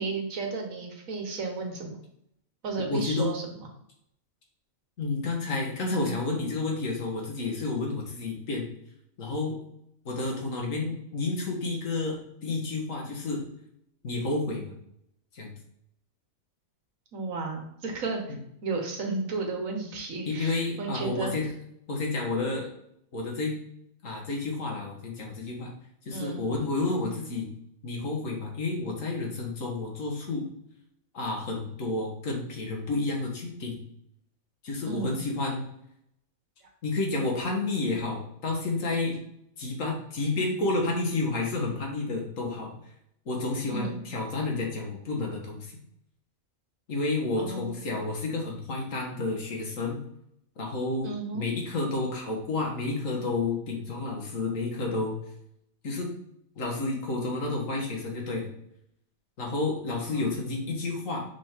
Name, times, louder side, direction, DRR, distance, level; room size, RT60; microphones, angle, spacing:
voice 1, 0.0-2.0 2.6-3.5 17.1-18.4 18.6-21.3 26.1-26.4 34.9-35.2 43.7-44.0 47.4-47.9 51.0-51.5 60.1-60.2, right 3 dB, 75° right, 1 dB, 1.6 m, -33 dB
voice 2, 2.8-3.3 5.0-8.7 9.2-9.6 10.1-13.4 14.0-14.7 15.3-15.5 20.3-21.5 21.9-22.7 23.1-23.6 24.0-25.7 26.0-27.5 27.8-30.5 31.1-33.8 34.6-35.6 36.8-39.2 39.6-42.8 43.3-45.7 46.9-50.0 50.6-55.2 55.8-56.1 56.6-58.5 59.4-61.2, left 3 dB, 70° left, 0 dB, 1.8 m, -30 dB
6.0 x 3.7 x 4.5 m, 0.74 s
omnidirectional pair, 1.4 m